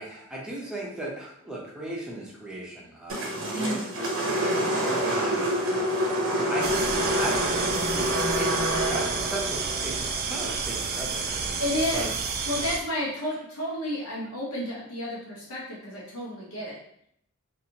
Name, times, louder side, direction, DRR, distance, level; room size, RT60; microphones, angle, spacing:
voice 1, 0.0-4.1 4.6-5.8 6.5-6.9 7.2-8.5 8.9-11.6 11.9-12.0, right 1 dB, 5° right, -5 dB, 0.6 m, -36 dB
sound 1, 3.1-11.4, equal, 70° right, 0.7 m, -27 dB
voice 2, 3.5-3.9 11.6-12.1 12.5-16.8, left 1 dB, 85° left, -6 dB, 0.8 m, -31 dB
sound 2, 6.6-12.8, right 5 dB, 45° right, 0.3 m, -30 dB
2.7 x 2.4 x 2.7 m, 0.70 s
head